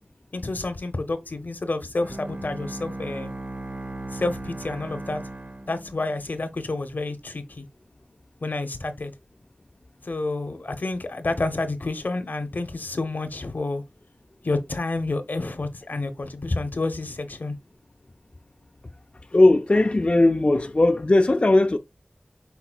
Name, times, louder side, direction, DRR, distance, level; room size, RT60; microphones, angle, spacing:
voice 1, 0.3-3.3 4.1-5.2 5.7-7.7 8.4-9.1 10.0-13.8 14.4-17.6, left 2 dB, 70° left, 0.8 m, -29 dB
Bowed string instrument, 2.0-6.4, right 2 dB, 55° right, 0.8 m, -37 dB
voice 2, 19.3-21.8, left 2 dB, 40° left, 0.4 m, -18 dB
5.8 x 3.8 x 2.3 m
wide cardioid pair, 60°, 3 cm